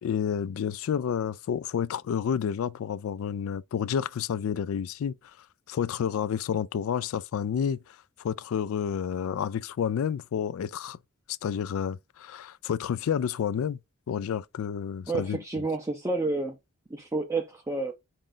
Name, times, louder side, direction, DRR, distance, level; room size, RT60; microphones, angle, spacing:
voice 1, 0.0-5.2 5.7-8.0 8.2-11.0 11.3-13.8 14.1-15.4, left 8 dB, 70° left, 0.3 m, -30 dB
voice 2, 15.1-16.6 16.9-17.9, right 3 dB, 15° right, 0.4 m, -30 dB
4.9 x 2.5 x 3.7 m
head